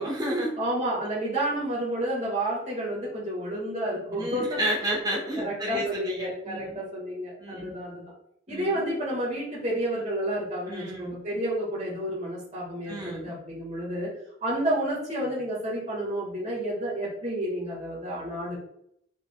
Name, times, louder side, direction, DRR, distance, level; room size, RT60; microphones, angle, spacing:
voice 1, 0.0-0.6 4.1-6.8 7.4-7.7 8.5-8.8 10.7-11.1 12.9-13.3, right 1 dB, 20° right, -2 dB, 0.9 m, -31 dB
voice 2, 0.6-4.6 5.3-8.0 8.5-14.1 14.4-18.6, right 1 dB, 35° right, -6 dB, 1.6 m, -30 dB
5.3 x 3.9 x 2.2 m, 0.71 s
head